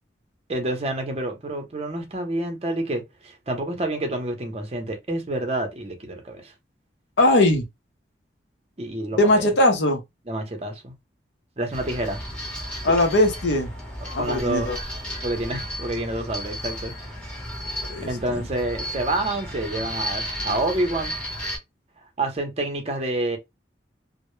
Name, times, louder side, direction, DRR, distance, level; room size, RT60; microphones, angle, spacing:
voice 1, 0.5-6.5 8.8-9.4 10.3-10.9 11.6-12.2 14.2-14.7 15.2-17.1 18.0-21.2 22.2-23.4, right 1 dB, 35° right, 0.6 m, -28 dB
voice 2, 7.2-7.7 9.2-10.0 12.8-13.7 14.1-14.8 17.9-18.5, left 1 dB, 75° left, 0.6 m, -20 dB
sound 1, 11.7-21.6, equal, 5° left, 0.7 m, -33 dB
2.0 x 2.0 x 3.0 m
head